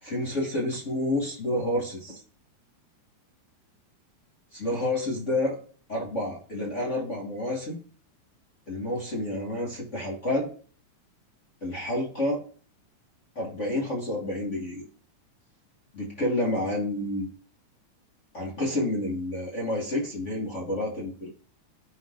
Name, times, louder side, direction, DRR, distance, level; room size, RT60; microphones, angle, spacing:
voice 1, 0.0-2.2 4.5-5.6 5.9-7.8 8.7-10.5 11.6-12.4 13.3-14.8 15.9-17.3 18.3-21.3, left 1 dB, 45° left, -3 dB, 0.9 m, -29 dB
15.0 x 5.5 x 2.4 m, 0.43 s
omnidirectional pair, 3.4 m